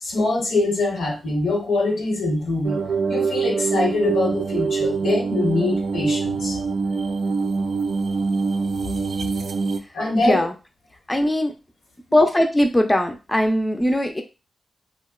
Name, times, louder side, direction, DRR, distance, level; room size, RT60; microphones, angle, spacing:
voice 1, 0.0-6.6 9.9-10.5, left 2 dB, 90° left, 0 dB, 0.8 m, -24 dB
sound 1, 2.6-9.8, right 4 dB, 75° right, 0.3 m, -24 dB
voice 2, 11.1-11.5 12.1-14.2, left 1 dB, 20° left, 5 dB, 0.4 m, -19 dB
2.7 x 2.1 x 2.3 m, 0.29 s
cardioid pair, 55°, 0 cm